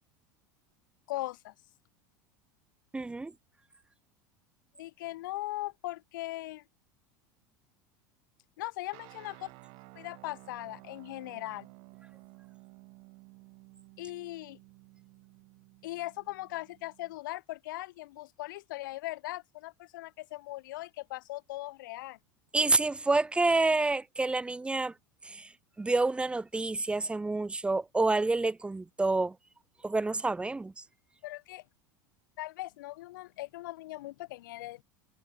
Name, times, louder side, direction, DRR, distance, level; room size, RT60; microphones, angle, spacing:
voice 1, 1.1-1.5 4.8-6.6 8.6-9.5 9.9-11.7 14.0-14.6 15.8-22.2 31.2-31.6 32.4-34.8, left 17 dB, 75° left, 0.8 m, -39 dB
voice 2, 2.9-3.3 22.5-24.9 25.2-25.5 25.8-29.3 29.8-30.7, right 3 dB, 10° right, 0.5 m, -28 dB
sound 1, 8.9-17.2, right 28 dB, 60° right, 2.3 m, -54 dB
hypercardioid pair, 90°, 11 cm